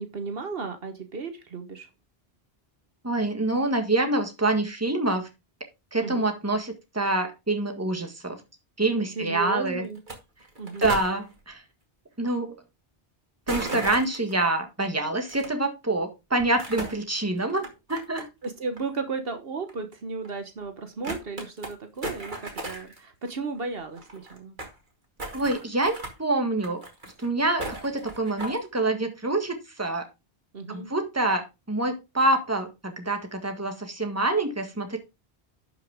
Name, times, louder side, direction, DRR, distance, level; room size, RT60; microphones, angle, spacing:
voice 1, 0.0-1.9 6.0-6.3 9.2-10.0 10.6-10.9 18.4-24.6 30.5-30.9, right 4 dB, 70° right, 8 dB, 1.4 m, -34 dB
voice 2, 3.0-5.3 5.9-8.4 8.8-9.8 10.8-11.6 12.2-12.6 13.5-18.3 25.3-26.8 27.2-30.0 30.7-35.0, right 2 dB, 15° right, 5 dB, 1.6 m, -26 dB
sound 1, 9.9-10.1 10.4-11.1 13.5-14.3 15.3-15.5 16.4-17.0 17.5-18.5 18.8-18.9 19.7-19.8 20.2-20.3 20.6-20.7 21.0-21.7 22.0-23.0 23.3-23.4 23.5-23.6 23.8-24.7 25.2-26.1 26.6-27.3 27.6-28.6, right 2 dB, 50° right, 2.4 m, -35 dB
11.0 x 5.7 x 3.6 m, 0.25 s
omnidirectional pair, 1.0 m